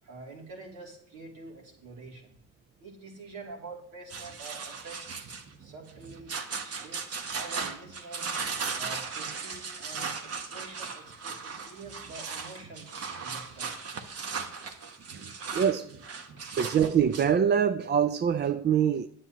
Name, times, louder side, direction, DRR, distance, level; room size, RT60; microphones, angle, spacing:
voice 1, 0.0-2.4 2.8-5.0 5.6-6.4 6.6-8.3 8.7-12.9 13.2-13.8 16.4-16.6, right 3 dB, 85° right, 3.1 m, -46 dB
sound 1, 4.1-17.3, right 5 dB, 55° right, 1.2 m, -37 dB
voice 2, 15.5-16.0 16.6-19.1, right 8 dB, 35° right, 0.4 m, -24 dB
9.9 x 7.9 x 3.0 m
cardioid pair, 90°, 30 cm